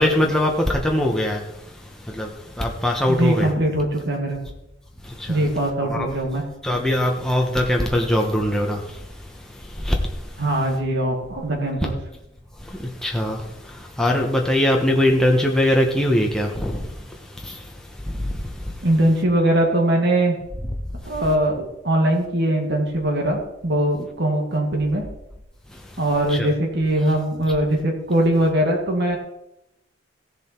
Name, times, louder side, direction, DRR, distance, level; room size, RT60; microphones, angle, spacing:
voice 1, 0.0-3.5 5.0-5.5 5.8-6.1 6.6-10.4 12.6-18.9 21.0-21.2 25.7-26.0 26.3-26.5, left 1 dB, 5° left, 1.1 m, -23 dB
voice 2, 3.1-4.4 5.3-6.4 10.4-11.9 18.8-20.3 21.1-25.0 26.0-29.2, right 1 dB, 55° right, 2.2 m, -21 dB
15.0 x 7.1 x 4.5 m
head